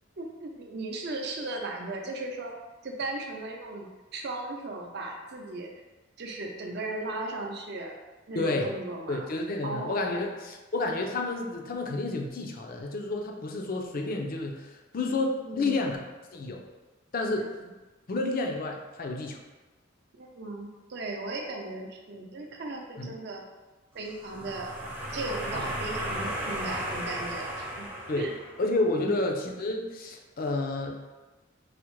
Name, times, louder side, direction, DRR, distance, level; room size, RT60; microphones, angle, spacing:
voice 1, 0.2-2.5 2.8-5.7 6.2-7.9 8.3-9.3 9.6-10.2 15.4-16.0 17.4-17.5 20.2-23.4 23.9-24.7 25.1-27.9 28.2-28.3 29.0-29.2, right 2 dB, 55° right, 1 dB, 0.5 m, -36 dB
voice 2, 8.3-8.7 9.1-16.0 16.3-16.7 17.1-17.5 18.1-19.4 23.0-23.1 25.5-25.7 28.1-28.3 28.6-30.9, left 2 dB, 45° left, 2 dB, 0.4 m, -30 dB
sound 1, 24.1-28.8, right 1 dB, 10° right, 0.5 m, -35 dB
4.8 x 2.1 x 3.0 m, 1.2 s
head